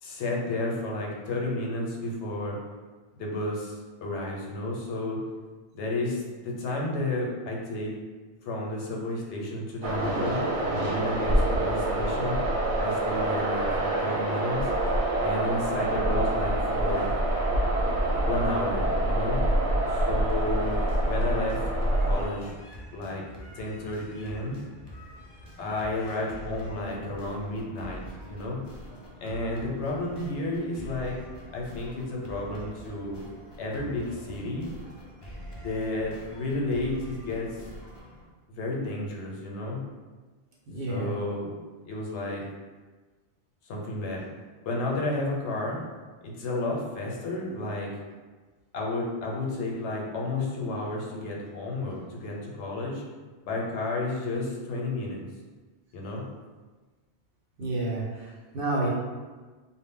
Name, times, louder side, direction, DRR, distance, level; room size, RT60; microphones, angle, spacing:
voice 1, 0.0-2.6 3.2-5.2 5.7-7.9 8.4-10.4 10.8-12.4 12.8-14.7 15.2-17.2 18.2-19.4 19.9-21.7 22.0-22.6 22.9-23.2 23.5-24.6 25.6-28.6 29.2-31.2 31.5-33.2 33.6-34.7 35.6-37.6 38.5-39.8 40.9-41.5 41.8-42.4 43.6-44.2 44.6-45.8 46.2-47.9 48.7-53.0 53.4-55.2 55.9-56.3, left 2 dB, 85° left, -2 dB, 0.9 m, -32 dB
sound 1, 9.8-22.3, right 1 dB, 85° right, 0.9 m, -26 dB
sound 2, 20.3-38.2, equal, 45° left, 0.3 m, -45 dB
voice 2, 40.7-41.1 57.6-58.9, right 2 dB, 60° right, -6 dB, 0.8 m, -30 dB
2.1 x 2.0 x 3.5 m, 1.4 s
omnidirectional pair, 1.1 m